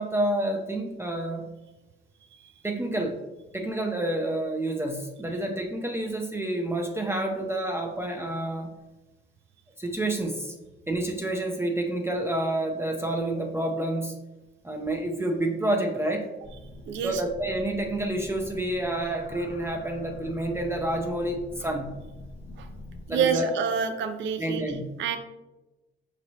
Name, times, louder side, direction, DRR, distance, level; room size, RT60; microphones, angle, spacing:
voice 1, 0.0-1.5 2.6-3.2 3.5-8.7 9.8-10.5 10.9-14.1 14.6-16.3 17.0-21.9 23.1-23.5 24.4-24.8, right 1 dB, 10° right, 2 dB, 0.5 m, -29 dB
sound 1, 16.4-23.1, left 1 dB, 50° left, 0.6 m, -44 dB
voice 2, 16.9-17.2 22.6-22.7 23.1-24.6 25.0-25.2, right 7 dB, 70° right, 8 dB, 0.5 m, -27 dB
4.9 x 3.0 x 2.8 m, 1.0 s
cardioid pair, 90°, 20 cm